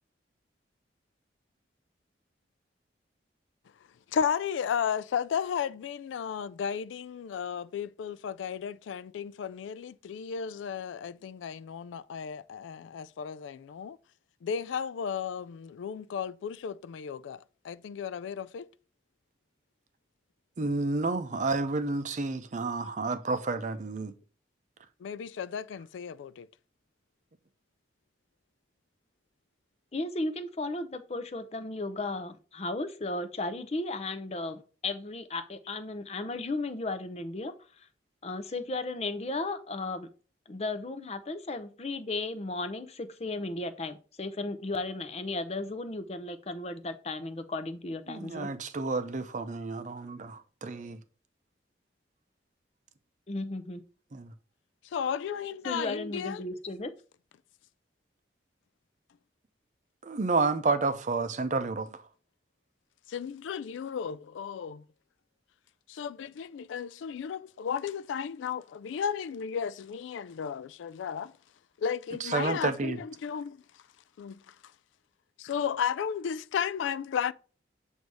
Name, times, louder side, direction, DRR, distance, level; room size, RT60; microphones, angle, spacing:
voice 1, 4.1-14.0 14.4-18.7 25.0-26.5 54.9-56.4 63.1-64.8 65.9-71.3 71.8-73.6 74.2-74.4 75.4-77.3, left 7 dB, 90° left, 0.3 m, -34 dB
voice 2, 20.6-24.1 48.1-51.0 54.1-54.3 60.0-62.0 72.2-73.0, right 3 dB, 40° right, 0.6 m, -30 dB
voice 3, 29.9-37.5 38.2-40.1 40.5-48.5 53.3-53.8 55.6-56.9, left 2 dB, 35° left, 0.6 m, -35 dB
7.8 x 2.7 x 4.7 m
head